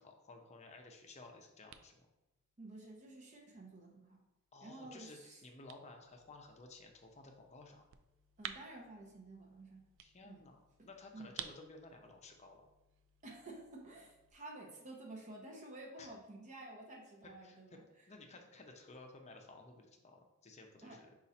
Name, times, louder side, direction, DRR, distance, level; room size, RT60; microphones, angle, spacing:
voice 1, 0.0-2.1 4.5-7.8 10.0-12.6 16.0-16.1 17.4-17.8 18.1-21.1, left 3 dB, 30° left, 3 dB, 0.6 m, -55 dB
sound 1, 0.8-14.3, right 9 dB, 65° right, 0.3 m, -55 dB
voice 2, 2.6-4.2 4.6-5.4 8.4-9.9 10.2-10.4 10.8-11.3 13.2-17.8 20.8-21.0, right 2 dB, 35° right, -1 dB, 0.7 m, -52 dB
5.3 x 2.5 x 4.1 m, 0.98 s
head